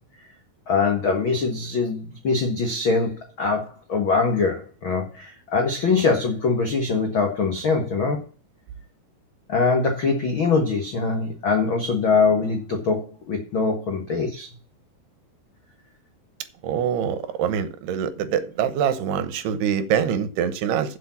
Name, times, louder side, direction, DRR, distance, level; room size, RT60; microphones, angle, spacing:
voice 1, 0.7-8.2 9.5-14.5, left 4 dB, 60° left, 1.3 m, -23 dB
voice 2, 16.6-21.0, right 8 dB, 75° right, 2.9 m, -24 dB
7.9 x 7.5 x 7.2 m
omnidirectional pair, 4.8 m